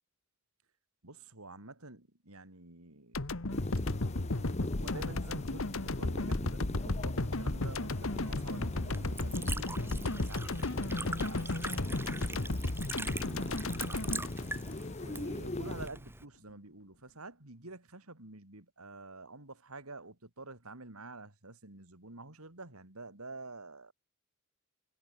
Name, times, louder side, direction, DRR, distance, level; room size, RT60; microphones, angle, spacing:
voice 1, 1.0-3.3 4.7-14.3 15.0-23.9, right 2 dB, 80° right, 3.9 m, -49 dB
sound 1, 3.1-15.4, left 2 dB, 65° left, 1.5 m, -34 dB
sound 2, 3.5-15.9, left 2 dB, 30° left, 0.9 m, -41 dB
Liquid, 7.7-16.2, right 3 dB, 10° right, 6.8 m, -43 dB
head